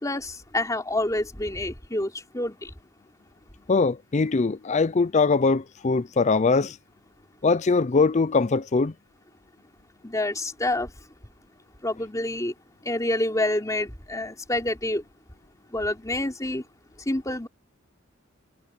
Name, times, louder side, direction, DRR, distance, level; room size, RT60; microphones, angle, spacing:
voice 1, 0.0-2.7 10.0-10.9 11.8-12.5 12.8-15.0 15.7-16.6 17.0-17.5, left 1 dB, 15° left, 3.1 m, -27 dB
voice 2, 3.7-6.8 7.4-8.9, left 4 dB, 35° left, 0.5 m, -22 dB
head